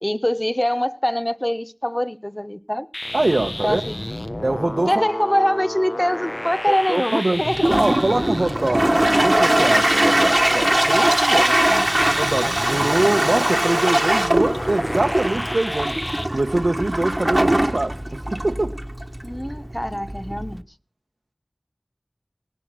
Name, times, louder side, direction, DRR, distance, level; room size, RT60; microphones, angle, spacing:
voice 1, 0.0-2.9 3.6-4.1 4.9-7.7 11.4-11.8 19.2-20.6, equal, 15° left, 0.9 m, -24 dB
sound 1, 2.9-16.2, left 1 dB, 50° left, 1.3 m, -31 dB
voice 2, 3.1-3.8 4.4-5.0 6.7-7.4 7.8-11.5 12.2-16.0 16.3-18.7, right 2 dB, 80° right, 1.0 m, -23 dB
Toilet flush, 7.4-20.6, right 1 dB, 35° right, 1.4 m, -21 dB
18.5 x 10.5 x 6.3 m
wide cardioid pair, 40°, 0 cm